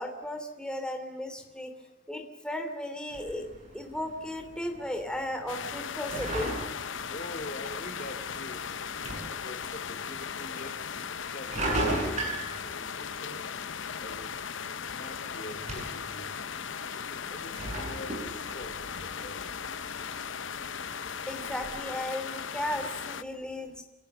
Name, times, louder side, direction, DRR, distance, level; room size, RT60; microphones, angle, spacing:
voice 1, 0.0-1.7 2.1-3.5 3.7-6.6 21.3-23.8, left 1 dB, 5° left, 4 dB, 3.1 m, -35 dB
sound 1, 3.1-21.7, right 2 dB, 35° right, 7.9 m, -39 dB
sound 2, 5.5-23.2, left 7 dB, 65° left, 0.8 m, -37 dB
voice 2, 7.1-8.7 9.3-11.0 11.3-11.7 11.9-12.3 12.6-13.5 14.0-14.3 14.9-16.3 16.9-19.4, left 1 dB, 45° left, 7 dB, 2.7 m, -44 dB
28.5 x 17.5 x 6.8 m, 1.0 s
head